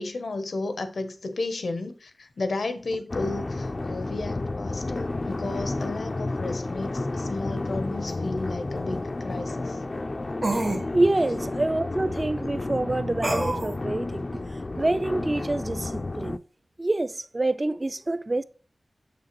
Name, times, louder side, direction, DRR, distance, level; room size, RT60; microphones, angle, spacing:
voice 1, 0.0-9.8, left 2 dB, 85° left, 0.8 m, -33 dB
sound 1, 3.1-16.4, left 2 dB, 40° left, 0.3 m, -31 dB
sound 2, 8.1-8.2 10.4-10.8 13.2-13.7, right 2 dB, 55° right, 1.3 m, -27 dB
voice 2, 10.9-14.4 14.8-16.4 16.8-18.4, right 2 dB, 35° right, 0.4 m, -26 dB
7.1 x 6.1 x 3.0 m
wide cardioid pair, 80°, 0 cm